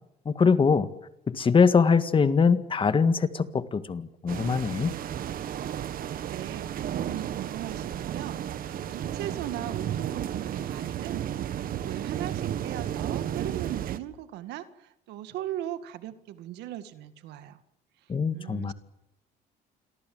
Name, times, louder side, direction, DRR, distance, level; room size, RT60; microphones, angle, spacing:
voice 1, 0.3-0.9 1.3-4.9 18.1-18.7, left 5 dB, 30° left, 12 dB, 1.8 m, -23 dB
sound 1, 4.3-14.0, right 10 dB, 60° right, 1.6 m, -33 dB
voice 2, 6.2-8.4 8.7-17.6 18.3-18.7, right 12 dB, 85° right, 11 dB, 2.0 m, -39 dB
28.5 x 22.5 x 7.8 m, 0.83 s
cardioid pair, 110°, 17 cm